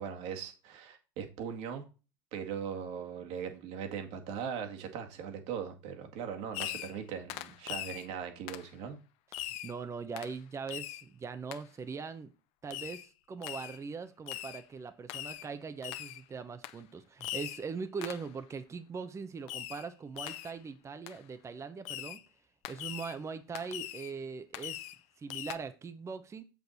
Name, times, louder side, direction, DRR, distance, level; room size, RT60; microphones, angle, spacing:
voice 1, 0.0-1.8 2.3-9.0, right 7 dB, 60° right, 2.1 m, -39 dB
Fireworks, 6.5-7.0 7.3-8.1 8.5-8.7 9.3-9.7 10.2-10.4 10.7-11.0 11.5-11.6 12.7-13.1 13.4-13.8 14.3-14.6 15.1-15.5 15.8-16.2 16.6-16.8 17.2-17.6 18.0-18.3 19.5-19.9 20.2-20.6 21.1-21.2 21.8-22.2 22.6-23.2 23.5-24.1 24.5-25.0 25.3-25.6, left 15 dB, 55° left, 0.8 m, -41 dB
voice 2, 9.3-12.3 12.6-22.2 22.7-24.9 25.2-26.4, right 5 dB, 25° right, 0.9 m, -41 dB
7.8 x 7.1 x 4.2 m
hypercardioid pair, 85°, 12 cm